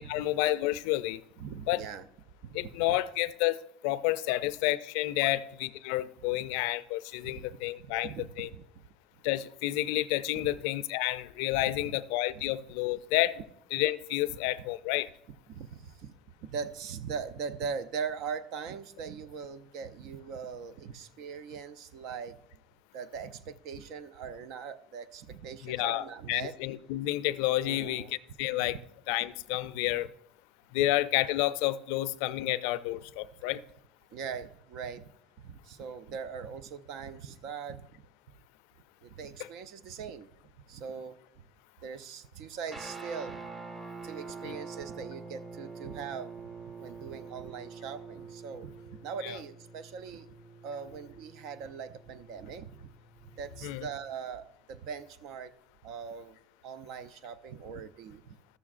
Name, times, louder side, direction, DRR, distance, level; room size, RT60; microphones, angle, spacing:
voice 1, 0.0-1.2 1.7-1.8 2.5-3.6 3.8-8.5 9.2-13.4 13.7-15.1 25.6-28.0 28.4-28.8 29.1-30.1 30.7-33.6 44.4-44.6 49.2-49.4 53.6-53.9, left 16 dB, 75° left, 15 dB, 0.4 m, -30 dB
voice 2, 1.4-2.1 2.4-2.6 2.9-3.0 4.3-4.4 5.2-5.4 7.2-7.6 7.8-8.8 10.3-10.5 11.7-12.0 12.3-12.5 14.3-14.4 15.5-16.1 16.4-22.4 22.9-26.6 27.6-28.1 28.6-28.8 34.1-35.1 35.4-38.0 39.0-40.3 40.7-41.4 41.8-43.4 44.0-46.3 46.8-48.7 49.0-50.3 50.6-52.9 53.2-55.5 55.8-56.4 56.6-58.4, right 6 dB, 65° right, 13 dB, 0.5 m, -41 dB
Guitar, 42.7-54.1, right 4 dB, 20° right, 1.4 m, -46 dB
13.5 x 6.9 x 2.5 m, 0.74 s
supercardioid pair, 100°, 0 cm